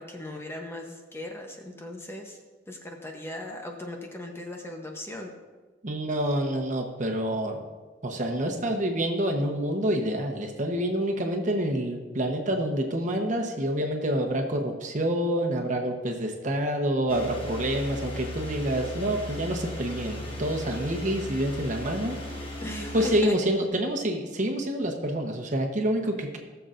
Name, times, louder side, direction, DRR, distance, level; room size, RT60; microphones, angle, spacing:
voice 1, 0.0-2.4 2.7-5.3 22.6-23.4, left 1 dB, 15° left, 2 dB, 0.9 m, -38 dB
voice 2, 5.8-7.6 8.0-22.4 22.9-26.4, right 1 dB, 45° right, 3 dB, 1.1 m, -27 dB
sound 1, 17.1-23.2, left 1 dB, 30° left, 1.4 m, -37 dB
19.0 x 6.9 x 2.6 m, 1.3 s
head